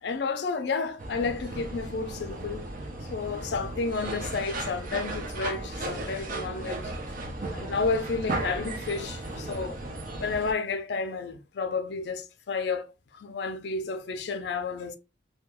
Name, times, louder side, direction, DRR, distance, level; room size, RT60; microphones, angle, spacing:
voice 1, 0.0-2.7 3.1-6.9 7.5-9.8 10.2-12.9 13.1-15.0, left 4 dB, 65° left, 0.4 m, -31 dB
sound 1, 1.0-10.5, right 2 dB, 45° right, 0.5 m, -35 dB
2.2 x 2.2 x 2.9 m
head